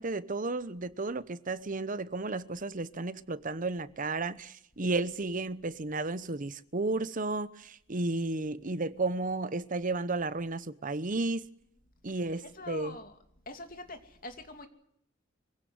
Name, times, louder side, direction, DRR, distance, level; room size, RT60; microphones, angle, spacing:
voice 1, 0.0-11.5 12.0-13.0, right 3 dB, 45° right, 0.9 m, -33 dB
voice 2, 12.4-13.1 13.5-14.7, left 2 dB, 45° left, 2.8 m, -44 dB
24.5 x 16.5 x 9.5 m
head